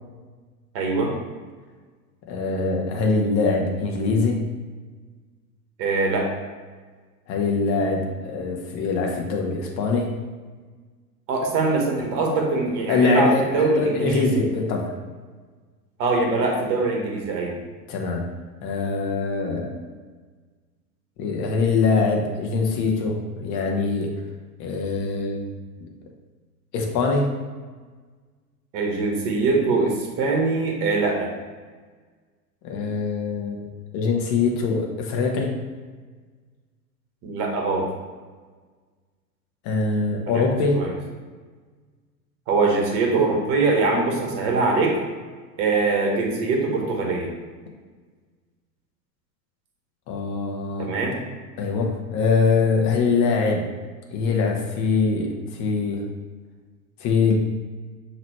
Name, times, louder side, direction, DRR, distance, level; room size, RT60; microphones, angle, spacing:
voice 1, 0.7-1.1 5.8-6.3 11.3-14.3 16.0-17.6 28.7-31.3 37.2-37.9 40.7-40.9 42.5-45.0 45.6-47.3 50.8-51.2, right 3 dB, 40° right, 0 dB, 1.3 m, -22 dB
voice 2, 2.3-4.5 7.3-10.2 12.9-14.9 17.9-18.3 18.6-19.8 21.2-24.1 24.6-25.4 25.8-25.9 26.7-27.3 32.6-33.6 33.9-35.6 39.6-40.9 50.1-50.9 51.6-53.7 54.1-56.0 57.0-57.3, left 4 dB, 35° left, 1 dB, 0.9 m, -23 dB
5.8 x 3.0 x 3.0 m, 1.4 s
figure-of-eight pair, 95°, 50 cm